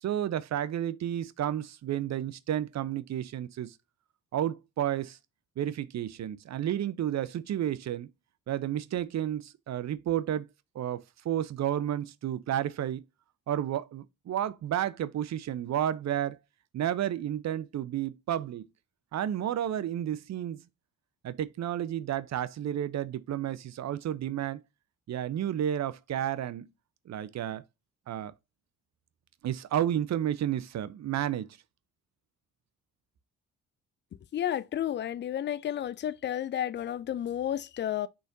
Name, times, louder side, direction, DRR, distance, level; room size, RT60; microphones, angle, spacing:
voice 1, 0.0-3.7 4.3-5.2 5.6-8.1 8.5-10.5 10.7-13.0 13.5-16.4 16.7-18.7 19.1-20.6 21.2-24.6 25.1-26.7 27.1-27.6 28.1-28.3 29.4-31.6, right 11 dB, 35° right, 0.6 m, -31 dB
voice 2, 34.3-38.1, left 10 dB, 25° left, 0.4 m, -31 dB
6.1 x 3.2 x 2.5 m
figure-of-eight pair, 40°, 46 cm